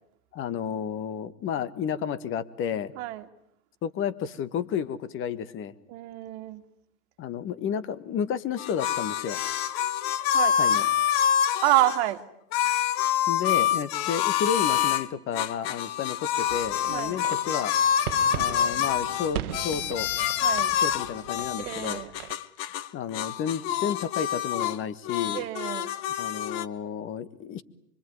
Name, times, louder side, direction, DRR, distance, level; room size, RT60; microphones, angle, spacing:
voice 1, 0.3-2.9 3.8-5.7 7.2-9.4 10.6-10.9 13.3-17.7 18.3-20.1 20.8-22.0 22.9-25.4 26.2-27.6, left 8 dB, 25° left, 1.6 m, -31 dB
voice 2, 3.0-3.3 5.9-6.6 10.3-10.8 11.6-12.2 16.9-17.2 20.4-20.7 21.6-22.1 25.3-25.9, right 16 dB, 45° right, 2.2 m, -28 dB
sound 1, 8.6-12.0 12.5-15.1 15.3-22.9 23.1-24.8 25.0-26.7, left 9 dB, 40° left, 1.4 m, -26 dB
sound 2, 16.4-22.3, right 11 dB, 70° right, 1.3 m, -39 dB
25.5 x 24.5 x 9.5 m
hypercardioid pair, 120°, 46 cm